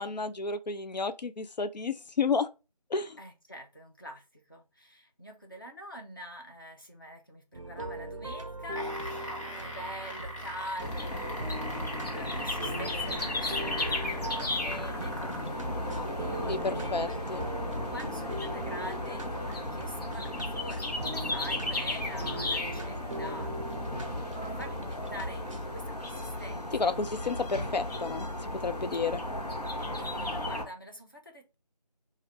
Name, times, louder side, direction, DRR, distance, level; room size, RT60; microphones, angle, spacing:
voice 1, 0.0-2.5 2.9-3.2 16.5-17.5 26.7-28.3 28.5-29.2, left 4 dB, 85° left, 0.5 m, -31 dB
voice 2, 3.2-17.2 17.9-23.5 24.4-27.0 30.0-31.5, equal, 30° left, 0.7 m, -45 dB
sound 1, 7.5-25.7, right 1 dB, 50° right, 0.5 m, -41 dB
sound 2, 8.6-15.5 16.4-16.5, equal, 50° left, 1.4 m, -41 dB
sound 3, 10.8-30.6, left 1 dB, 70° left, 1.1 m, -35 dB
3.2 x 2.5 x 4.0 m
figure-of-eight pair, 175°, 21 cm